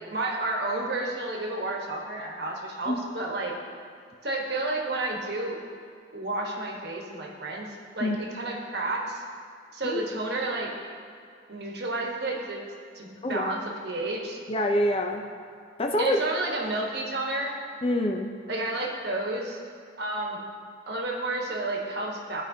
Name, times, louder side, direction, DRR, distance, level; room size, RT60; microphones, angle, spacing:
voice 1, 0.1-3.5 4.2-5.6 6.1-7.7 7.9-9.2 9.7-10.7 11.5-12.6 12.9-14.4 16.0-17.6 18.5-19.6 20.0-20.4 20.9-22.4, right 2 dB, 55° right, -1 dB, 1.2 m, -31 dB
voice 2, 13.2-13.5 14.5-15.2 15.8-16.2 17.8-18.3, left 1 dB, 30° left, 3 dB, 0.5 m, -26 dB
15.0 x 5.0 x 2.7 m, 2.3 s
head